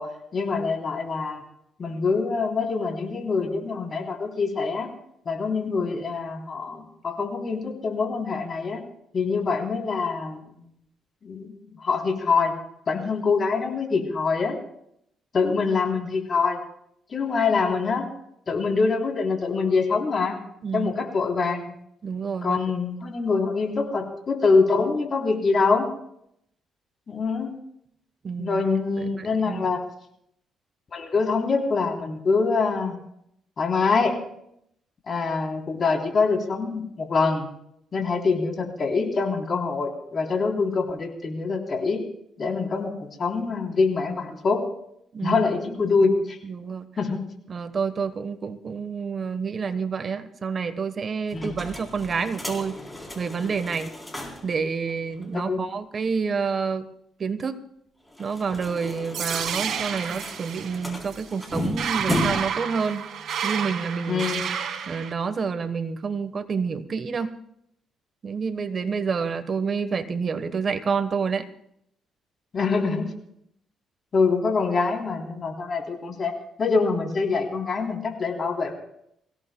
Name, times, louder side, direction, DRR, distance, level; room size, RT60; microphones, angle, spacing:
voice 1, 0.0-1.4 1.8-4.9 5.3-8.8 9.1-10.4 11.2-12.5 12.9-14.6 15.3-16.6 17.1-18.1 18.5-20.4 20.7-21.7 22.4-25.9 27.1-27.5 28.4-29.8 30.9-32.9 33.6-34.2 35.1-37.5 37.9-42.0 42.4-42.9 43.2-44.6 45.2-46.4 47.0-47.2 51.3-51.5 55.3-55.6 64.1-64.5 72.5-73.1 74.1-76.3 76.6-78.7, left 4 dB, 45° left, 1 dB, 3.5 m, -24 dB
voice 2, 22.0-22.6 28.2-28.6 29.0-29.7 45.1-45.4 46.4-46.9 47.5-52.8 53.1-53.9 54.4-56.9 57.2-57.6 58.2-63.1 63.4-64.2 64.9-67.3 68.2-71.5, right 5 dB, 45° right, 10 dB, 1.2 m, -28 dB
sound 1, 51.3-54.6 54.9-55.0 55.2-55.3 58.1-62.6, left 1 dB, 10° left, 3.7 m, -34 dB
sound 2, 59.1-65.1, right 7 dB, 70° right, 1.4 m, -30 dB
25.0 x 16.5 x 2.3 m, 0.74 s
cardioid pair, 90°, 0 cm